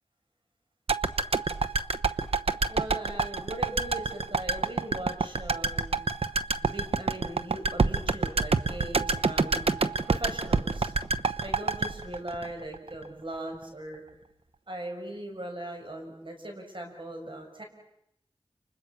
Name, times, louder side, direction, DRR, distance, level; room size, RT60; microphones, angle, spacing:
sound 1, 0.9-13.1 13.3-13.4, right 4 dB, 80° right, 1.0 m, -27 dB
voice 1, 2.7-6.0 6.6-9.7 10.1-10.9 11.4-14.0 14.7-17.6, right 1 dB, 55° right, 3 dB, 6.5 m, -39 dB
29.5 x 29.0 x 6.2 m, 0.80 s
cardioid pair, 40°, 10 cm